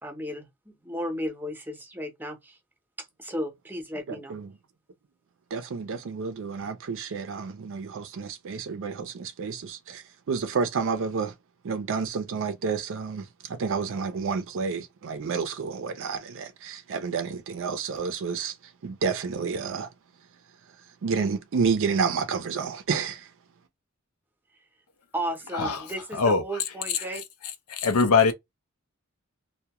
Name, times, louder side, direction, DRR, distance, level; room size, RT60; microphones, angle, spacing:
voice 1, 0.0-2.6 3.0-4.4 25.1-27.2, equal, 10° right, 0.7 m, -34 dB
voice 2, 5.5-10.0 10.3-11.3 11.6-13.2 13.5-18.5 18.8-19.9 21.0-23.2, right 5 dB, 60° right, 0.4 m, -30 dB
voice 3, 25.5-26.6 26.9-27.2 27.7-28.3, left 5 dB, 85° left, 0.6 m, -23 dB
2.2 x 2.1 x 2.8 m
head